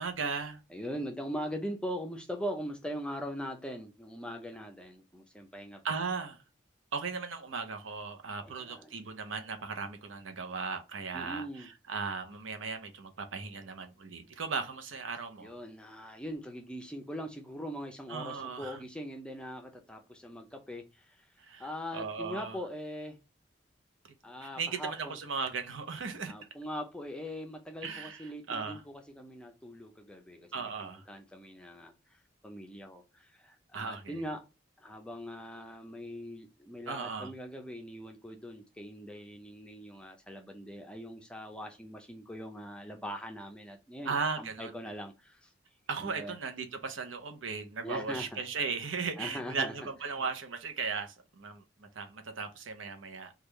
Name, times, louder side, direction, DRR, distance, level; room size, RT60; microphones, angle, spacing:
voice 1, 0.0-0.6 5.8-6.4 6.9-15.5 18.1-18.8 21.4-22.6 24.4-26.3 27.8-28.8 30.5-31.0 33.7-34.2 36.9-37.3 44.0-44.7 45.9-53.3, right 5 dB, 85° right, 0.7 m, -37 dB
voice 2, 0.7-5.8 8.4-8.9 11.1-11.7 15.4-23.2 24.2-25.2 26.2-34.4 34.8-45.5 46.0-46.4 47.8-48.4 49.2-49.7, equal, 5° left, 0.5 m, -41 dB
3.5 x 2.3 x 3.1 m
head